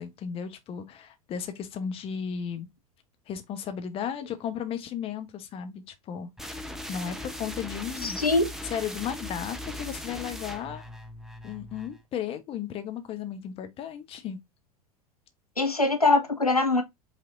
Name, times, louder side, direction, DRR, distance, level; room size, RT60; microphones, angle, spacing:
voice 1, 0.0-2.7 3.3-6.3 6.9-8.3 8.6-10.8 11.4-14.4, left 8 dB, 30° left, 0.9 m, -35 dB
sound 1, 6.4-12.0, left 1 dB, ahead, 0.8 m, -39 dB
voice 2, 8.0-8.4 15.6-16.8, left 3 dB, 90° left, 0.7 m, -22 dB
5.6 x 3.4 x 2.5 m
figure-of-eight pair, 80°, 19 cm